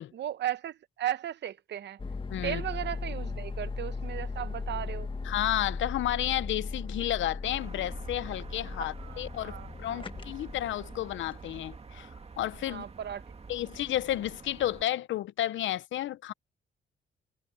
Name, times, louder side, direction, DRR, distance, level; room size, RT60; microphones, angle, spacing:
voice 1, 0.1-2.0 2.4-5.1 9.0-10.0 12.7-13.2, right 11 dB, 60° right, 1.0 m, -36 dB
sound 1, 2.0-11.4, left 4 dB, 25° left, 1.5 m, -37 dB
voice 2, 2.3-2.6 5.2-12.1 12.4-12.9 13.5-16.3, left 13 dB, 75° left, 0.9 m, -32 dB
sound 2, 7.4-14.8, right 4 dB, 30° right, 2.3 m, -47 dB
cardioid pair, 90°, 20 cm